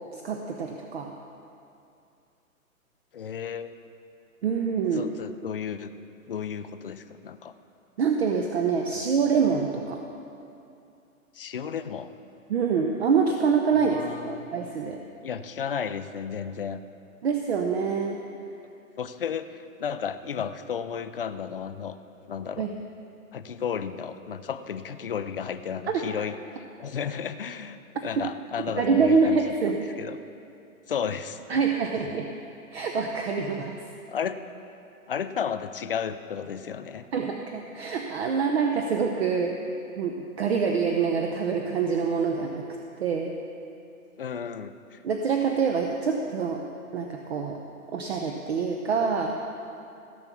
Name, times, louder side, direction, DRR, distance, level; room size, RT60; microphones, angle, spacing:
voice 1, 0.1-1.1 4.4-5.1 8.0-10.0 12.5-14.0 14.3-15.0 17.2-18.2 22.6-22.7 25.9-26.0 28.8-29.8 31.5-32.3 32.7-33.7 37.1-39.6 40.0-42.7 43.0-43.4 45.0-46.6 46.9-47.6 47.9-49.4, right 5 dB, 45° right, 3 dB, 0.8 m, -25 dB
voice 2, 3.1-3.8 4.9-6.0 6.3-7.5 8.9-9.0 11.3-12.1 13.7-14.5 15.2-16.8 19.0-22.0 22.3-22.7 23.3-30.2 30.9-31.4 34.1-34.4 35.1-37.1 44.2-45.0, left 7 dB, 40° left, 11 dB, 0.4 m, -33 dB
16.0 x 6.1 x 6.9 m, 2.6 s
hypercardioid pair, 160°, 43 cm